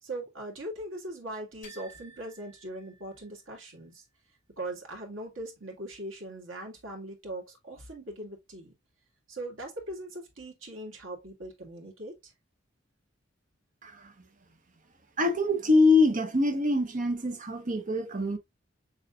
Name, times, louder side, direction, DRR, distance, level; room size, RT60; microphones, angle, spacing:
voice 1, 0.0-4.0 4.6-8.7 9.3-12.3, right 1 dB, 80° right, 2.2 m, -40 dB
sound 1, 1.6-3.5, right 2 dB, 40° left, 3.5 m, -53 dB
voice 2, 15.2-18.4, left 2 dB, 40° right, 0.9 m, -24 dB
6.8 x 3.3 x 2.4 m
head